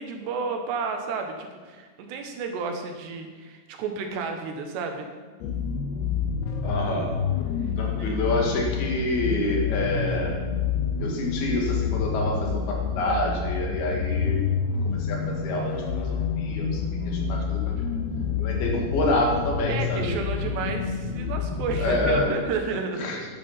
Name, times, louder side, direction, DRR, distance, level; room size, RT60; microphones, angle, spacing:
voice 1, 0.0-5.1 8.0-8.1 19.7-23.1, right 4 dB, 85° right, 4 dB, 3.5 m, -31 dB
sound 1, 5.4-22.3, left 6 dB, 90° left, 3.3 m, -28 dB
voice 2, 6.6-7.2 7.8-10.4 11.0-14.4 14.8-18.0 18.4-20.2 21.8-22.3 23.0-23.3, left 1 dB, 70° left, 0 dB, 3.8 m, -28 dB
12.0 x 9.4 x 5.7 m, 1.5 s
omnidirectional pair, 4.7 m